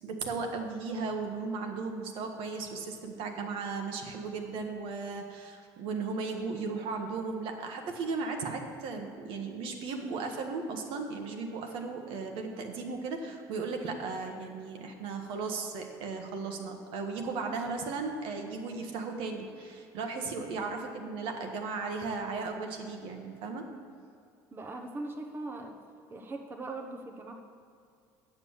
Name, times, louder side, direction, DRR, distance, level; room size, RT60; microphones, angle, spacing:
voice 1, 0.0-23.7, right 4 dB, 70° right, 3 dB, 1.4 m, -36 dB
voice 2, 24.5-25.8 26.1-27.3, right 2 dB, 25° right, 2 dB, 0.9 m, -40 dB
8.9 x 6.9 x 7.3 m, 2.4 s
cardioid pair, 115°, 9 cm